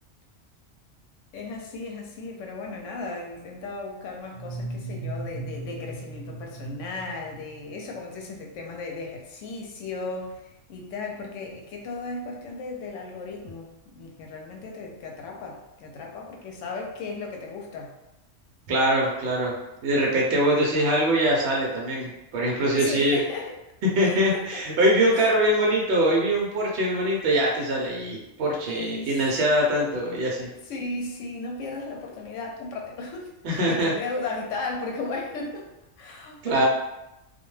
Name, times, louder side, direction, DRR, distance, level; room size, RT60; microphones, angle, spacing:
voice 1, 1.3-18.0 22.7-23.5 24.0-24.7 25.1-25.3 28.7-29.2 30.6-35.7 36.0-36.7, left 3 dB, 85° left, 1 dB, 0.9 m, -35 dB
sound 1, 4.3-8.0, right 2 dB, 50° left, 0.6 m, -37 dB
voice 2, 18.7-19.5 19.8-23.2 24.0-30.5 33.4-33.9 36.4-36.7, right 1 dB, 60° right, -2 dB, 0.8 m, -23 dB
2.3 x 2.2 x 3.1 m, 0.92 s
omnidirectional pair, 1.2 m